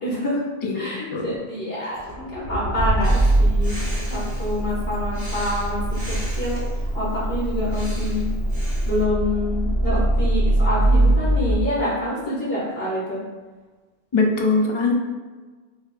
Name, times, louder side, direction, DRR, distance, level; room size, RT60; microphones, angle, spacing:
voice 1, 0.0-0.4 0.7-2.0 2.3-3.8 4.1-8.3 8.8-13.2, left 1 dB, 70° left, -6 dB, 1.6 m, -27 dB
voice 2, 0.6-1.3 14.1-14.9, left 3 dB, 45° left, 0 dB, 0.4 m, -22 dB
Accelerating revving vroom, 1.9-11.5, right 1 dB, 5° right, 1.0 m, -22 dB
Breathing, 3.0-9.0, right 1 dB, 35° right, 1.4 m, -35 dB
4.9 x 2.5 x 2.3 m, 1.4 s
omnidirectional pair, 1.1 m